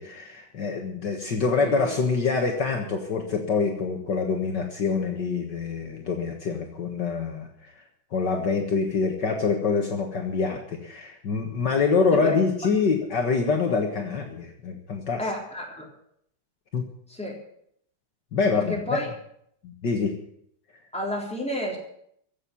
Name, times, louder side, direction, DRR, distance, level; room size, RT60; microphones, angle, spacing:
voice 1, 0.0-7.7 8.1-15.3 16.7-16.9 18.3-19.0 19.6-20.2, left 4 dB, 60° left, 3 dB, 2.1 m, -25 dB
voice 2, 15.2-15.9 17.1-17.4 18.5-19.1 20.9-21.8, left 2 dB, 5° left, -2 dB, 3.8 m, -30 dB
15.5 x 7.6 x 9.5 m, 0.69 s
omnidirectional pair, 2.3 m